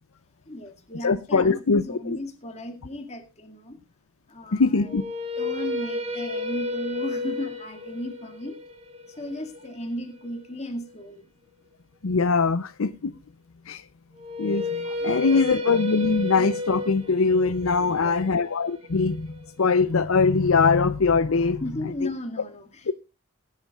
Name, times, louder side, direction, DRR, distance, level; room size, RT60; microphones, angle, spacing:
voice 1, 0.5-3.8 4.3-4.9 5.4-8.6 9.1-11.2 15.0-15.7 17.8-18.4 21.6-22.9, left 1 dB, 30° left, 2.1 m, -35 dB
voice 2, 1.0-2.2 4.5-5.0 12.0-13.1 13.7-13.8 14.4-21.6 22.9-23.0, left 4 dB, 70° left, 0.6 m, -22 dB
sound 1, 4.8-10.9 14.2-20.2, left 2 dB, 30° right, 1.7 m, -33 dB
20.0 x 10.5 x 2.4 m
head